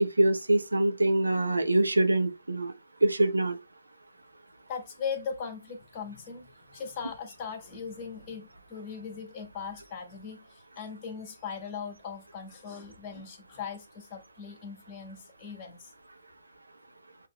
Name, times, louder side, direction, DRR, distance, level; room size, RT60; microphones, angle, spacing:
voice 1, 0.0-2.7 3.0-3.6, right 2 dB, 80° right, 0.7 m, -24 dB
voice 2, 4.7-15.9, left 6 dB, 25° left, 1.5 m, -39 dB
7.9 x 2.9 x 2.3 m
figure-of-eight pair, 130°, 0 cm